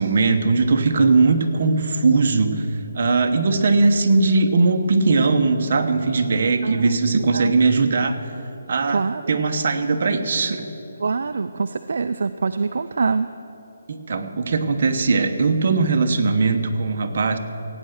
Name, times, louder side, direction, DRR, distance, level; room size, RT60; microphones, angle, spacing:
voice 1, 0.0-2.7 2.9-8.2 8.7-10.7 13.9-17.4, right 3 dB, 45° right, 5 dB, 1.0 m, -19 dB
voice 2, 11.0-13.3, right 4 dB, 60° right, 10 dB, 0.4 m, -24 dB
16.5 x 8.9 x 6.5 m, 3.0 s
hypercardioid pair, 170°, 0 cm